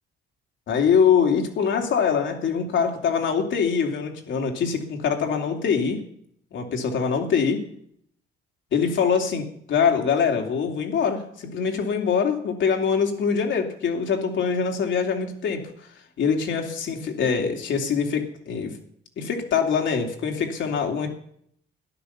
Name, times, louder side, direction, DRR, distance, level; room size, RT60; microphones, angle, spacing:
voice 1, 0.7-6.0 6.5-7.6 8.7-15.7 16.2-18.8 19.2-21.1, left 6 dB, 70° left, 3 dB, 2.9 m, -23 dB
13.0 x 10.5 x 7.1 m, 0.67 s
cardioid pair, 90°, 20 cm